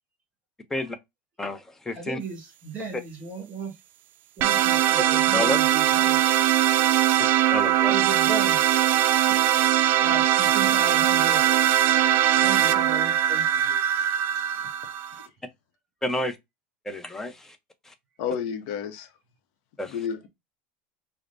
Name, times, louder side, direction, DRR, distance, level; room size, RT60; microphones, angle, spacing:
voice 1, 1.4-2.2 5.0-5.1 5.3-5.6 7.2-7.9 16.0-16.4 16.9-17.6 17.9-18.0 19.8-19.9, left 1 dB, 10° left, 0.6 m, -30 dB
voice 2, 1.9-3.7 4.4-6.2 7.9-8.6 10.0-11.5 12.4-13.8, right 3 dB, 30° right, 2.2 m, -36 dB
sound 1, 4.4-15.3, right 12 dB, 50° right, 0.4 m, -21 dB
voice 3, 18.2-19.1 19.9-20.3, left 8 dB, 70° left, 0.7 m, -31 dB
4.8 x 2.1 x 2.5 m
supercardioid pair, 130°, 5 cm